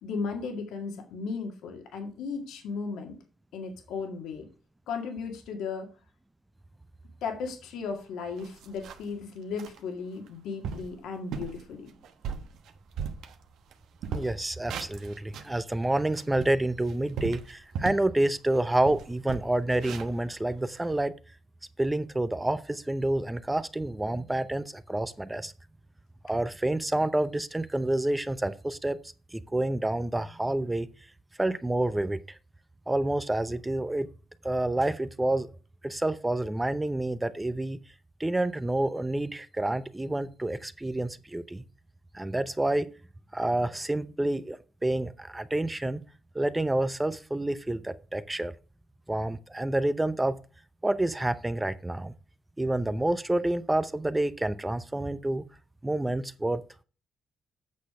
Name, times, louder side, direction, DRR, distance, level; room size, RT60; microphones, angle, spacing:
voice 1, 0.0-3.2 3.5-4.5 4.9-5.9 7.2-11.9, left 5 dB, 85° left, 2.0 m, -35 dB
sound 1, 7.9-8.0 8.4-9.2 9.6-9.8 10.3-10.4 10.6-10.9 11.3-11.6 12.0-13.7 14.0-15.6 16.0-18.1 18.5-18.6 18.8-21.0, right 6 dB, 80° right, 1.1 m, -37 dB
voice 2, 14.1-21.1 21.8-25.5 26.2-29.0 29.3-30.9 31.4-32.4 32.9-34.1 34.4-35.5 35.8-37.8 38.2-41.6 42.1-42.9 43.3-46.0 46.3-48.5 49.1-50.4 50.8-52.1 52.6-55.4 55.8-56.6, right 1 dB, 10° right, 0.6 m, -28 dB
8.4 x 6.3 x 4.9 m
cardioid pair, 90°, 0 cm